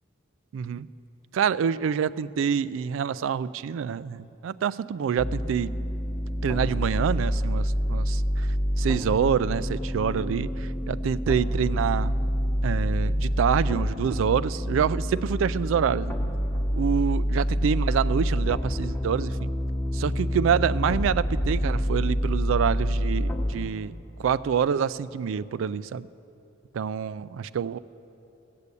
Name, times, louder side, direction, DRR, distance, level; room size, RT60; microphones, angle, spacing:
voice 1, 0.5-0.9 1.3-5.8 6.4-8.5 8.8-12.1 12.6-16.2 16.7-19.5 19.9-23.9 24.2-26.1 26.7-27.8, right 7 dB, 80° right, 18 dB, 0.3 m, -26 dB
sound 1, 5.2-23.7, equal, 10° left, 0.9 m, -27 dB
16.5 x 6.7 x 8.3 m, 3.0 s
head